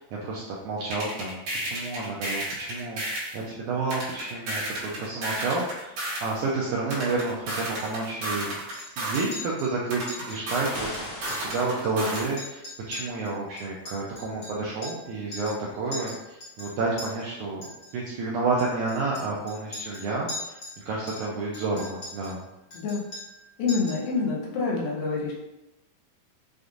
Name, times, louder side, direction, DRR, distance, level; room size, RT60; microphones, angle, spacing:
voice 1, 0.0-5.9 6.2-8.5 9.0-12.6 12.9-17.7 17.9-20.6 20.9-22.5, right 3 dB, 85° right, -4 dB, 1.7 m, -30 dB
sound 1, 0.9-3.4 3.9-6.4 6.9-9.4 9.9-12.4, right 1 dB, 60° right, 2.5 m, -32 dB
Chink clink, 7.8-8.4 8.7-8.9 9.1-9.7 10.1-10.4 10.7-10.8 11.1-11.9 12.1-15.1 15.3-15.6 15.9-17.1 17.6-17.9 18.6-20.8 21.1-22.4 22.7-23.4 23.7-24.1, left 2 dB, 45° left, 1.6 m, -40 dB
sound 2, 10.7-12.3, left 1 dB, 60° left, 1.9 m, -39 dB
voice 2, 23.6-25.3, left 4 dB, 85° left, -3 dB, 2.5 m, -27 dB
6.4 x 2.5 x 2.4 m, 0.93 s
omnidirectional pair, 4.1 m